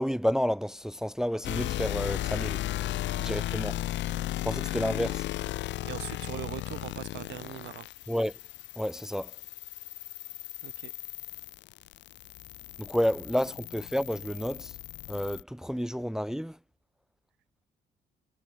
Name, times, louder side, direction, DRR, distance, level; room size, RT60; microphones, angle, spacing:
voice 1, 0.0-2.6 3.2-3.8 4.4-5.3 8.1-8.4 8.8-9.4 12.8-14.8 15.1-16.6, equal, 5° right, 0.6 m, -30 dB
sound 1, 1.4-15.4, left 15 dB, 70° left, 0.4 m, -35 dB
sound 2, 3.1-7.9 8.3-10.1 10.4-11.1 11.4-12.7 13.0-13.1 13.4-13.6 13.9-14.0 14.9-15.0 15.2-15.5 16.0-16.3, right 3 dB, 20° right, 6.9 m, -70 dB
voice 2, 5.8-7.9 10.6-10.9, right 15 dB, 65° right, 0.4 m, -41 dB
cardioid pair, 90°, 20 cm